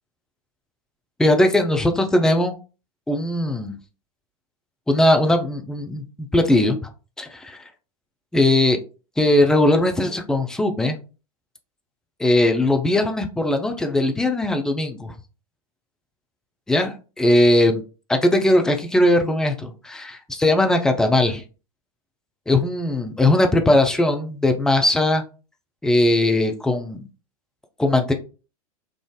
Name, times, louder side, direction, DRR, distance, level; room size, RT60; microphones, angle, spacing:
voice 1, 1.2-2.5 3.1-3.8 4.9-6.8 7.2-7.6 8.3-8.8 9.2-11.0 12.2-15.1 16.7-17.8 18.1-21.4 22.5-25.2 25.8-27.1 27.8-28.1, left 1 dB, 5° left, 4 dB, 0.4 m, -19 dB
3.6 x 2.5 x 2.3 m, 0.34 s
figure-of-eight pair, 95°, 19 cm